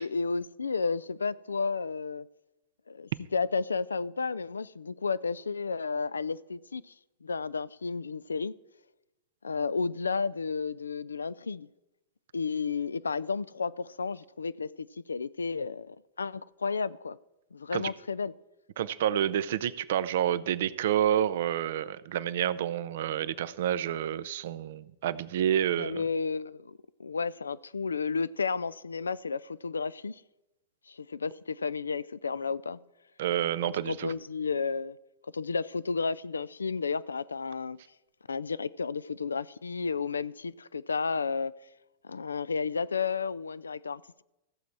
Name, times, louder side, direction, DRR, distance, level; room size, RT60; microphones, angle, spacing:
voice 1, 0.0-2.3 2.9-6.9 7.2-8.5 9.4-11.7 12.3-17.2 17.5-18.3 25.7-30.2 30.9-32.8 33.9-35.0 35.3-37.8 38.3-41.5 42.0-44.2, left 5 dB, 85° left, 0.3 m, -32 dB
voice 2, 18.8-26.0 33.2-34.1, right 10 dB, 65° right, 0.5 m, -29 dB
15.0 x 7.1 x 4.6 m
hypercardioid pair, 100°, 0 cm